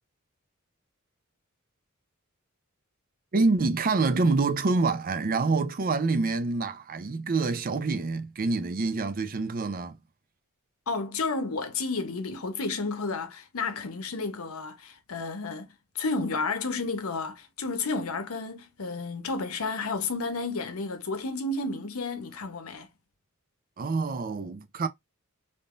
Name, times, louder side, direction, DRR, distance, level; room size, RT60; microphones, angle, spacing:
voice 1, 3.3-10.0 23.8-24.9, right 3 dB, 40° right, 0.5 m, -26 dB
voice 2, 10.9-22.9, left 3 dB, 80° left, 0.8 m, -32 dB
3.6 x 2.6 x 2.4 m
head